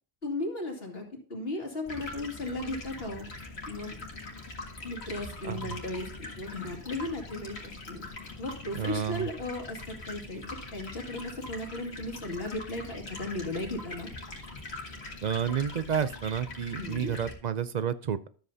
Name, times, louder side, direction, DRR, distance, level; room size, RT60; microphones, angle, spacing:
voice 1, 0.2-1.0 1.3-3.3 3.7-4.0 4.8-8.0 8.4-9.8 10.1-10.4 10.7-14.1 16.8-17.1, left 2 dB, 65° left, 1 dB, 2.5 m, -36 dB
Stream, 1.8-17.3, left 2 dB, 85° left, 2.2 m, -42 dB
voice 2, 5.4-5.8 8.7-9.3 15.2-18.3, right 8 dB, 50° right, 13 dB, 0.6 m, -30 dB
12.5 x 7.7 x 2.8 m, 0.40 s
omnidirectional pair, 1.1 m